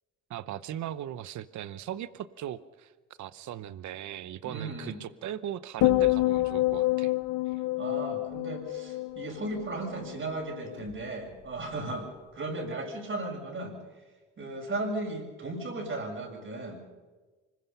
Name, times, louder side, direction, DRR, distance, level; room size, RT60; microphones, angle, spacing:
voice 1, 0.3-2.9 3.2-7.1 7.5-7.6, right 11 dB, 70° right, 15 dB, 0.9 m, -38 dB
voice 2, 4.4-5.0 7.8-13.8 14.4-16.9, right 2 dB, 40° right, 2 dB, 7.3 m, -36 dB
sound 1, 5.8-10.2 10.5-10.9, left 18 dB, 85° left, 0.7 m, -28 dB
25.5 x 21.5 x 5.6 m, 1.3 s
cardioid pair, 90°, 30 cm